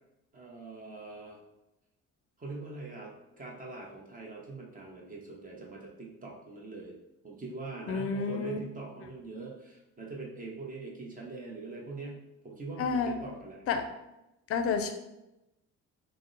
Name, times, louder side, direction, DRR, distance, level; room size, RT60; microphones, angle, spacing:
voice 1, 0.3-1.4 2.4-7.0 7.2-13.6, right 3 dB, 25° right, -1 dB, 0.8 m, -43 dB
voice 2, 7.9-8.6 12.8-13.2 13.7-13.8 14.5-14.9, left 5 dB, 50° left, 7 dB, 0.5 m, -29 dB
2.7 x 2.0 x 3.7 m, 0.92 s
cardioid pair, 90°, 31 cm